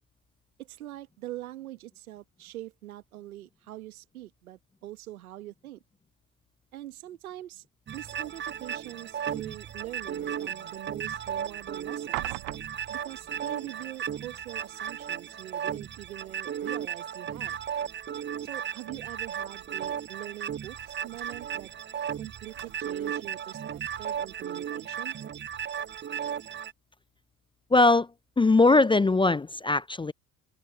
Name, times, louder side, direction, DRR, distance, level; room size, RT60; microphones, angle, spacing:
voice 1, 0.6-5.8 6.7-7.7 7.9-12.4 12.9-17.6 18.4-21.7 22.2-25.2, right 14 dB, 85° right, 1.9 m, -43 dB
sound 1, 7.9-26.7, right 9 dB, 25° right, 0.7 m, -35 dB
sound 2, 9.7-25.0, right 27 dB, 70° right, 1.6 m, -48 dB
voice 2, 27.7-28.1 28.4-30.1, left 3 dB, 10° left, 0.5 m, -20 dB
hypercardioid pair, 65°, 42 cm